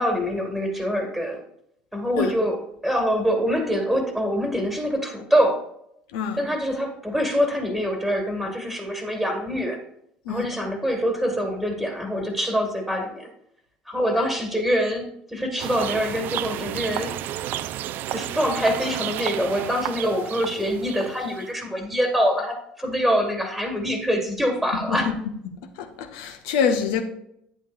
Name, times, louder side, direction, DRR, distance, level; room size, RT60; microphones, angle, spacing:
voice 1, 0.0-1.4 1.9-5.6 6.3-9.8 10.3-13.3 13.9-17.2 18.1-25.1, equal, 5° left, 2.0 m, -25 dB
voice 2, 6.1-6.4 10.2-10.5 24.9-25.0 25.8-27.0, left 6 dB, 60° left, 1.1 m, -25 dB
sound 1, 15.6-21.5, right 12 dB, 50° right, 0.4 m, -32 dB
9.9 x 8.2 x 2.6 m
figure-of-eight pair, 60°, 4 cm